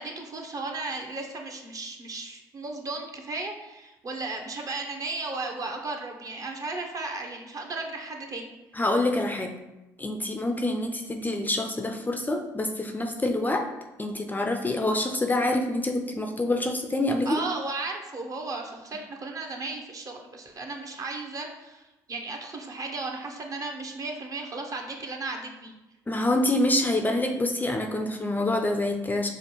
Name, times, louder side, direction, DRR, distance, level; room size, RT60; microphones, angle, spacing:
voice 1, 0.0-8.5 17.3-25.7, right 3 dB, 40° right, 2 dB, 0.7 m, -35 dB
voice 2, 8.8-9.5 10.0-13.7 14.0-17.4 26.1-29.3, left 1 dB, 20° left, 4 dB, 0.4 m, -26 dB
5.1 x 2.1 x 3.0 m, 1.0 s
hypercardioid pair, 55°, 10 cm